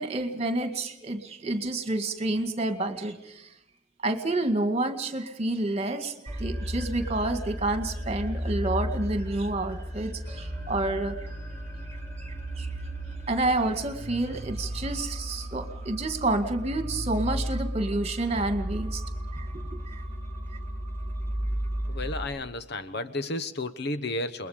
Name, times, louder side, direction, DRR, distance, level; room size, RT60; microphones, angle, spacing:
voice 1, 0.0-3.5 4.0-11.2 11.9-12.7 13.3-19.0 19.3-19.5 19.7-20.0, right 2 dB, 35° right, 2.0 m, -29 dB
sound 1, 6.3-22.3, equal, 15° left, 6.0 m, -34 dB
voice 2, 21.9-24.5, left 2 dB, 60° left, 1.1 m, -32 dB
29.0 x 21.5 x 5.1 m
head